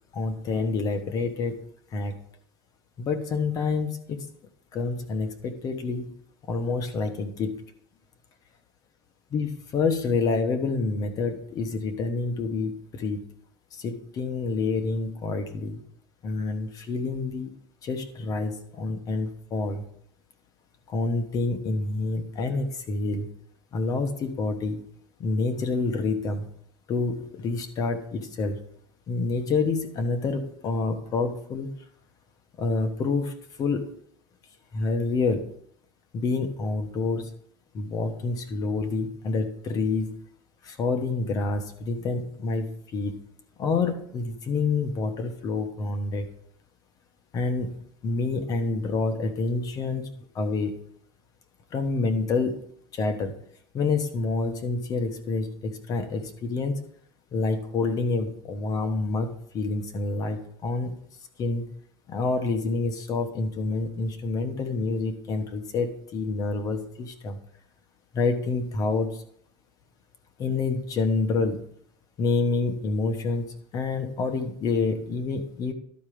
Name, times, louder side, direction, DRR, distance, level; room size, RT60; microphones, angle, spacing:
voice 1, 0.1-1.6 1.9-2.2 3.0-4.2 4.7-6.1 6.5-7.6 9.3-13.2 13.7-15.8 16.2-17.5 17.8-19.8 20.9-23.3 23.7-24.8 25.2-26.5 26.9-28.6 29.1-31.7 32.6-33.3 33.6-33.8 34.7-35.5 36.1-37.3 37.7-40.2 40.6-43.2 43.6-46.3 47.3-47.8 48.0-50.1 50.3-50.7 51.7-52.6 52.9-53.3 53.7-56.8 57.3-60.9 61.4-61.7 62.1-67.4 68.1-69.2 70.4-71.6 72.2-75.7, left 3 dB, 30° left, 7 dB, 1.1 m, -28 dB
12.0 x 4.4 x 5.1 m, 0.66 s
supercardioid pair, 150°, 13 cm